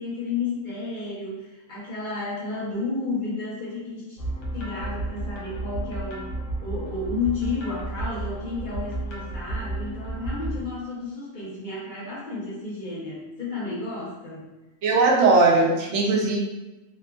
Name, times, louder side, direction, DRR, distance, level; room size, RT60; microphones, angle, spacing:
voice 1, 0.0-4.2 4.5-6.3 6.6-14.5, left 3 dB, 45° left, -7 dB, 0.9 m, -32 dB
sound 1, 4.2-10.6, right 2 dB, 75° left, 1.0 m, -32 dB
voice 2, 14.8-16.4, right 3 dB, 70° right, -2 dB, 0.9 m, -19 dB
3.0 x 2.3 x 2.3 m, 1.1 s
omnidirectional pair, 1.3 m